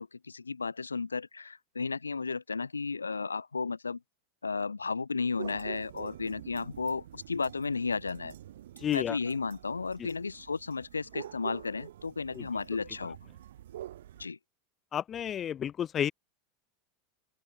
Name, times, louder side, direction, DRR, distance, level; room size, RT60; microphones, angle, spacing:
voice 1, 0.0-4.0 4.4-8.3 8.9-13.2 14.2-14.4, left 4 dB, 85° left, 1.1 m, -34 dB
sound 1, 5.4-14.3, right 12 dB, 65° right, 2.5 m, -47 dB
voice 2, 8.8-9.2 12.4-12.5 14.9-16.1, left 9 dB, 30° left, 0.5 m, -31 dB
open air
figure-of-eight pair, 85°, 0 cm